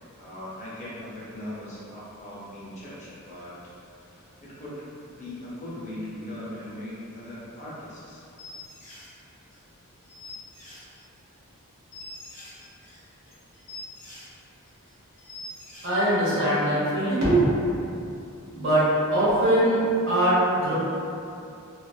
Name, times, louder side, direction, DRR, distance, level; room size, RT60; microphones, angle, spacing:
voice 1, 0.2-3.6 3.9-4.8 5.2-8.3, left 1 dB, 35° left, -8 dB, 0.6 m, -39 dB
sound 1, 8.4-9.1 9.5-9.6 10.0-11.2 11.5-11.6 11.9-14.3 14.7-14.9 15.2-15.9, left 2 dB, 75° left, 0.9 m, -44 dB
voice 2, 15.8-17.5 18.5-19.8 20.1-20.7, right 1 dB, 55° right, -9 dB, 0.8 m, -22 dB
2.4 x 2.3 x 2.2 m, 2.6 s
head